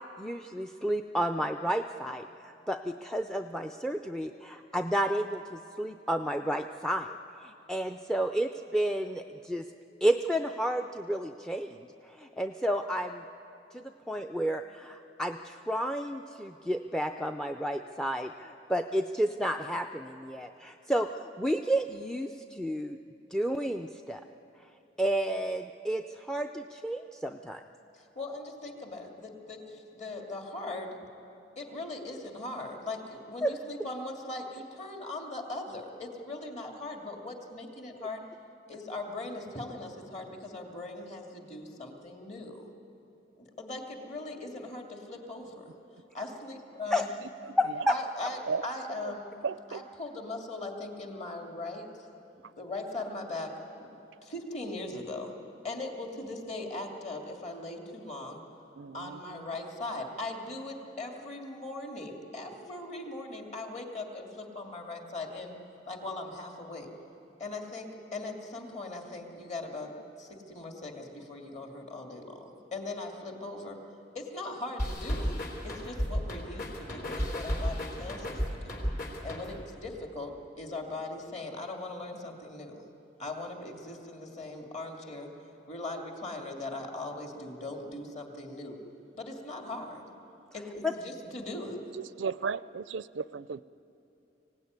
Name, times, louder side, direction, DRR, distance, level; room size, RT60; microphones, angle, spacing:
voice 1, 0.2-7.2 7.4-9.6 10.0-11.8 12.2-13.2 13.7-23.0 23.3-24.2 25.0-27.6 33.4-33.5 46.9-47.0 47.6-47.9 90.8-90.9, equal, 5° left, 6 dB, 0.5 m, -31 dB
voice 2, 27.9-31.0 31.6-38.2 38.7-42.6 43.4-45.7 46.1-47.1 47.9-49.4 49.7-51.9 52.3-53.9 54.2-55.4 55.6-58.4 58.9-65.6 65.9-66.9 67.4-73.8 74.1-75.4 75.6-78.8 79.2-82.8 83.2-85.3 85.7-88.8 89.1-90.1 90.5-91.9, left 2 dB, 40° left, 2 dB, 2.8 m, -40 dB
voice 3, 49.4-49.8 58.8-59.4 92.2-93.6, right 5 dB, 80° right, 17 dB, 0.5 m, -34 dB
sound 1, 74.8-79.8, equal, 55° left, 3.8 m, -33 dB
25.0 x 17.0 x 9.6 m, 2.8 s
head